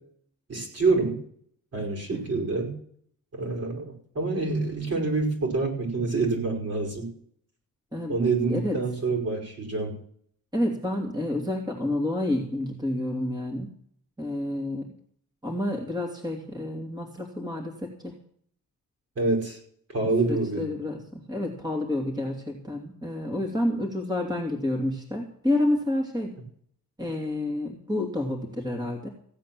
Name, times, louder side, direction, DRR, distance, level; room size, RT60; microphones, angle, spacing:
voice 1, 0.5-1.2 1.7-2.7 3.3-7.1 8.1-10.0 19.2-19.6 19.9-20.6, right 3 dB, 45° right, 2 dB, 5.5 m, -26 dB
voice 2, 2.1-2.5 7.9-8.2 8.5-8.8 10.5-13.7 14.2-14.9 15.4-18.1 20.3-26.3 27.0-29.1, left 1 dB, 10° right, 1 dB, 2.9 m, -29 dB
16.0 x 8.5 x 7.6 m, 0.62 s
cardioid pair, 95°, 34 cm